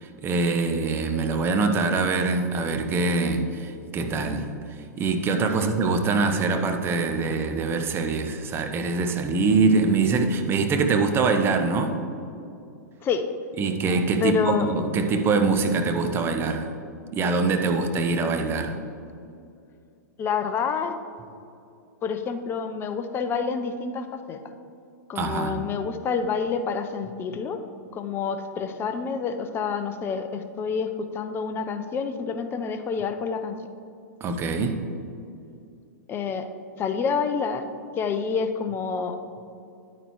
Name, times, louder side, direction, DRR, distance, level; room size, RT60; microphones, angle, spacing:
voice 1, 0.0-4.5 5.0-12.0 13.6-16.7 17.1-18.8 25.1-25.6 34.2-34.7, right 3 dB, 25° right, 6 dB, 0.8 m, -24 dB
voice 2, 14.2-14.7 20.2-20.9 22.0-24.4 25.1-27.6 27.9-33.6 36.1-36.5 36.8-37.7 38.0-39.2, left 6 dB, 25° left, 8 dB, 0.6 m, -28 dB
10.0 x 9.0 x 3.1 m, 2.6 s
hypercardioid pair, 110°, 9 cm